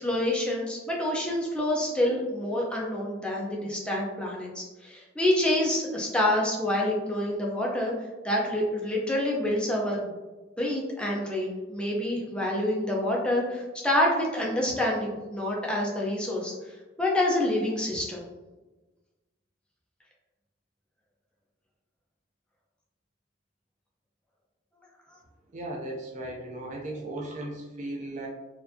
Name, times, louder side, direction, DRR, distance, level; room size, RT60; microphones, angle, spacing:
voice 1, 0.0-7.9 8.2-10.1 10.6-18.2 25.1-25.2, left 1 dB, 5° left, -3 dB, 0.6 m, -27 dB
voice 2, 25.5-28.3, right 1 dB, 40° right, 0 dB, 0.4 m, -36 dB
4.3 x 2.6 x 2.7 m, 1.1 s
head